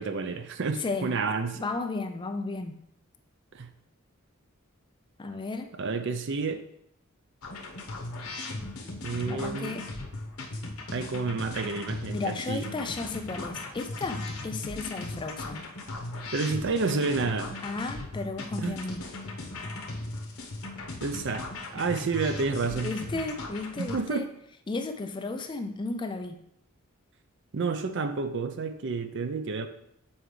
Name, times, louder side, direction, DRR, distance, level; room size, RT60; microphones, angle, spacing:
voice 1, 0.0-1.6 3.5-3.7 5.8-6.6 9.0-9.8 10.9-12.6 16.3-17.6 18.6-18.8 21.0-21.5 21.7-22.9 23.8-24.3 27.5-29.7, right 4 dB, 55° right, 9 dB, 0.5 m, -30 dB
voice 2, 0.8-1.1 1.5-2.8 5.2-5.7 9.3-9.9 12.1-15.7 17.6-19.0 22.7-24.3 24.7-26.4, left 3 dB, 20° left, 7 dB, 0.4 m, -34 dB
sound 1, 7.4-24.0, left 2 dB, 85° left, 1.0 m, -38 dB
7.1 x 4.4 x 3.2 m, 0.72 s
head